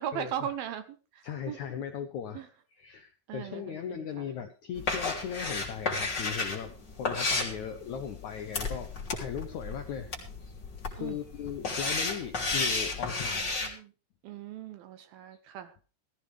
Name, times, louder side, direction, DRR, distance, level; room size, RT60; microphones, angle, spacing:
voice 1, 0.0-1.6 2.3-2.5 3.3-4.3 11.0-11.2 13.3-13.9 14.2-15.7, right 10 dB, 75° right, 11 dB, 2.5 m, -39 dB
voice 2, 1.2-10.1 10.4-10.6 10.9-13.5, left 8 dB, 85° left, 7 dB, 1.6 m, -38 dB
sound 1, 4.8-13.7, left 3 dB, 30° left, 3.2 m, -33 dB
17.0 x 14.0 x 3.5 m, 0.34 s
omnidirectional pair, 4.8 m